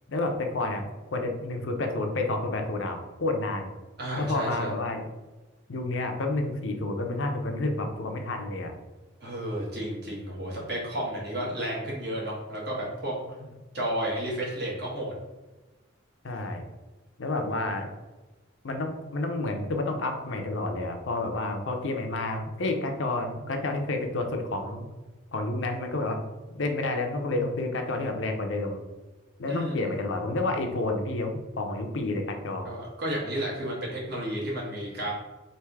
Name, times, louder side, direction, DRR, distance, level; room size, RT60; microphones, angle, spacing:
voice 1, 0.1-3.7 4.2-5.0 5.7-8.7 16.2-16.6 17.2-17.9 18.6-24.9 25.3-26.2 26.5-28.8 29.4-32.7, left 2 dB, 70° left, 4 dB, 0.6 m, -30 dB
voice 2, 4.0-4.7 9.2-13.1 13.7-15.1 29.5-29.8 32.6-35.1, right 1 dB, 50° right, -4 dB, 1.4 m, -32 dB
3.4 x 2.6 x 4.6 m, 1.2 s
head